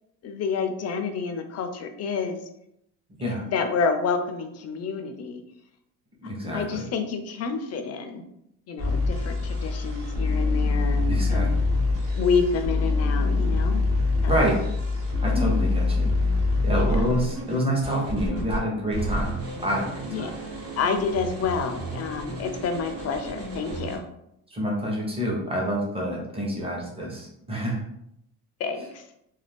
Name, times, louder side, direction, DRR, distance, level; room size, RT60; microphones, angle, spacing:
voice 1, 0.2-2.4 3.2-5.4 6.5-8.2 8.7-11.5 12.1-13.8 14.2-14.5 15.4-15.5 16.8-17.1 20.1-20.4 20.8-24.0 28.6-29.1, left 5 dB, 40° left, 7 dB, 0.4 m, -29 dB
voice 2, 6.2-6.8 11.0-11.5 14.3-14.6 15.2-16.1 16.6-20.3 24.5-27.8, equal, 15° right, -2 dB, 0.8 m, -27 dB
sound 1, 8.8-18.6 18.9-24.0, left 2 dB, 35° right, 1.1 m, -26 dB
2.5 x 2.2 x 3.3 m, 0.77 s
cardioid pair, 125°, 40 cm